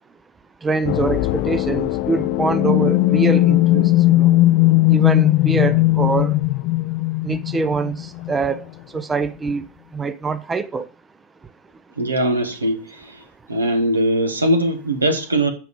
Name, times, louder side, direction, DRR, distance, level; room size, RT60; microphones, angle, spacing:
voice 1, 0.6-3.8 4.2-4.3 4.9-6.4 7.2-8.0 8.3-8.6 8.9-9.6 9.9-10.9, right 4 dB, 15° right, 0.5 m, -23 dB
sound 1, 0.8-8.6, left 17 dB, 50° left, 0.4 m, -18 dB
voice 2, 12.0-13.2 13.5-15.5, right 1 dB, 85° right, 1.4 m, -20 dB
8.0 x 4.9 x 5.2 m
figure-of-eight pair, 85°, 0 cm